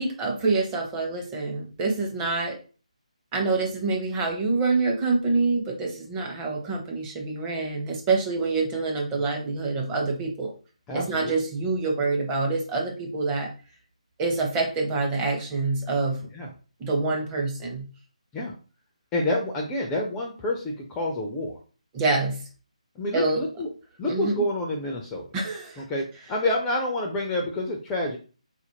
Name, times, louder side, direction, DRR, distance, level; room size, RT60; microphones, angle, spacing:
voice 1, 0.0-2.6 3.3-10.5 10.9-13.5 14.2-16.3 16.8-17.9 21.9-22.4 23.1-23.4 24.1-24.4 25.3-25.8, right 3 dB, 15° right, 0 dB, 0.7 m, -26 dB
voice 2, 10.9-11.3 16.3-16.5 18.3-18.5 19.1-21.6 23.0-23.7 24.0-25.3 25.8-28.2, left 1 dB, 10° left, 1 dB, 0.4 m, -28 dB
3.9 x 2.5 x 2.8 m, 0.36 s
figure-of-eight pair, 150°, 4 cm